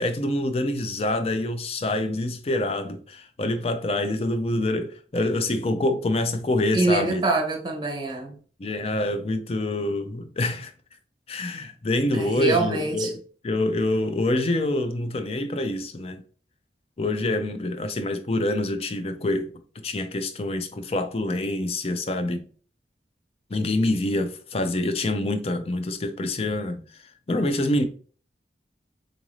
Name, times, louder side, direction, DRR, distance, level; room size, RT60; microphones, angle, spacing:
voice 1, 0.0-7.2 8.6-10.7 11.3-16.2 17.0-19.5 19.8-22.4 23.5-27.0 27.3-27.8, left 1 dB, 35° left, 0.4 m, -26 dB
voice 2, 6.7-8.3 12.1-13.1, right 2 dB, 25° right, 0.7 m, -24 dB
3.9 x 2.5 x 3.0 m
head